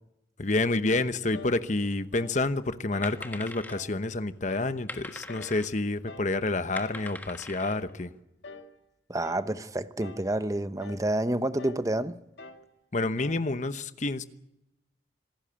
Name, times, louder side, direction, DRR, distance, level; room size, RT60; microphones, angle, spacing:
voice 1, 0.4-8.1 12.9-14.2, left 2 dB, 45° left, 1.0 m, -29 dB
sound 1, 1.3-1.6 2.1-2.4 2.9-3.2 3.7-4.0 4.5-4.8 5.3-5.6 6.1-6.4 6.9-7.1 7.6-8.0 8.4-8.7 9.2-9.5 10.0-10.4 10.8-11.1 11.6-11.9 12.4-12.7 13.2-13.5, left 3 dB, 80° left, 1.9 m, -45 dB
sound 2, 1.9-2.4 2.6-4.1 4.7-5.7 6.2-6.3 6.5-8.0, left 1 dB, 10° left, 1.5 m, -42 dB
voice 2, 9.1-12.2, right 1 dB, 20° right, 0.8 m, -29 dB
26.5 x 14.0 x 8.9 m
head